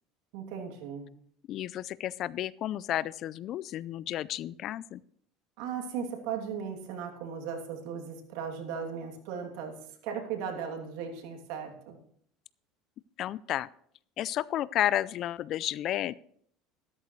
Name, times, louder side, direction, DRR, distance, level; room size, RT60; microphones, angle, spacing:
voice 1, 0.3-1.1 5.6-9.8 10.0-12.0, right 7 dB, 75° right, 3 dB, 2.7 m, -37 dB
voice 2, 1.5-5.0 13.2-13.7 14.2-16.1, left 12 dB, 50° left, 21 dB, 0.4 m, -32 dB
13.5 x 13.0 x 3.2 m, 0.64 s
supercardioid pair, 120°, 0 cm